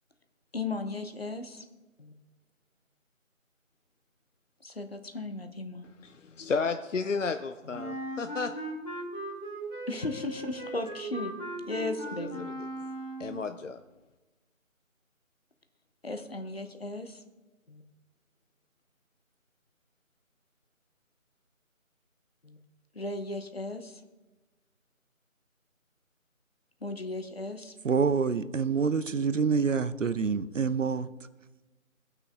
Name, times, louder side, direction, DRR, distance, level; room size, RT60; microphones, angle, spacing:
voice 1, 0.5-1.6 2.0-2.1 4.6-5.9 7.7-7.8 9.9-11.3 11.6-12.5 16.0-17.2 17.7-17.8 22.4-22.6 22.9-24.0 26.8-27.7, left 2 dB, 45° left, 0.9 m, -36 dB
voice 2, 6.0-8.5 12.2-12.5 13.2-13.8, left 4 dB, 65° left, 0.5 m, -32 dB
Wind instrument woodwind instrument, 7.7-13.4, right 1 dB, 30° left, 2.2 m, -38 dB
voice 3, 27.8-31.1, right 5 dB, 65° right, 0.6 m, -27 dB
18.0 x 6.0 x 3.4 m
figure-of-eight pair, 170°, 41 cm